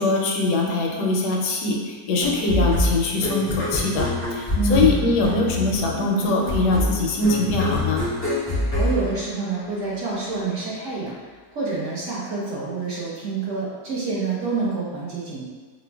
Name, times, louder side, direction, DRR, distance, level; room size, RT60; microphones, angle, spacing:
voice 1, 0.0-8.0, left 3 dB, 85° left, 0 dB, 1.2 m, -22 dB
sound 1, 2.2-9.8, left 1 dB, 15° left, 0.4 m, -26 dB
voice 2, 4.6-5.3 8.4-11.1 11.5-15.4, right 4 dB, 60° right, -6 dB, 0.9 m, -27 dB
5.0 x 2.1 x 2.2 m, 1.4 s
omnidirectional pair, 1.7 m